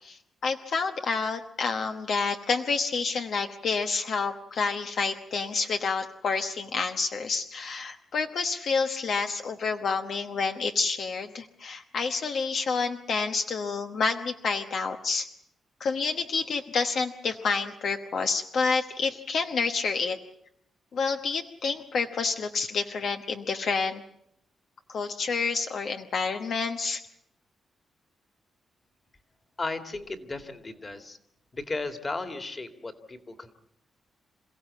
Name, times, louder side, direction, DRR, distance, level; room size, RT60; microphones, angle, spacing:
voice 1, 0.0-15.3 15.8-20.2 20.9-24.0 24.9-27.0, left 4 dB, 65° left, 5 dB, 1.1 m, -29 dB
voice 2, 29.6-31.2 31.5-33.5, left 3 dB, 30° left, 7 dB, 2.3 m, -35 dB
28.0 x 16.0 x 8.4 m, 0.77 s
cardioid pair, 105°, 0 cm